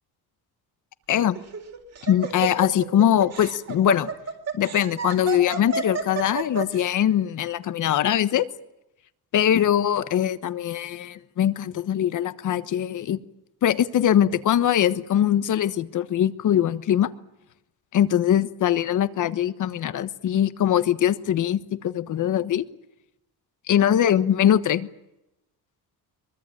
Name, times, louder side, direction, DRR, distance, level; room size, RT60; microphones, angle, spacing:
Laughter, 1.3-6.8, right 6 dB, 40° right, 3.8 m, -31 dB
voice 1, 2.1-4.1 4.5-8.5 9.3-13.2 13.6-17.1 17.9-22.6 23.7-24.9, left 10 dB, 50° left, 1.3 m, -22 dB
23.5 x 23.0 x 9.2 m
cardioid pair, 180°, 38 cm